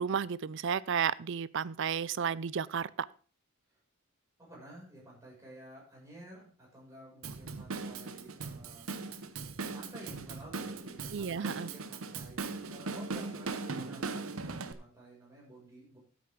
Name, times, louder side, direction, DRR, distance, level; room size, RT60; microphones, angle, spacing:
voice 1, 0.0-3.1 11.1-11.7, right 7 dB, 60° right, 19 dB, 0.4 m, -32 dB
voice 2, 4.4-8.9 9.7-12.4 12.7-16.0, right 1 dB, 15° right, -5 dB, 6.2 m, -52 dB
Drum kit / Drum, 7.2-14.7, right 4 dB, 75° right, 0.9 m, -39 dB
13.0 x 8.6 x 3.7 m, 0.39 s
head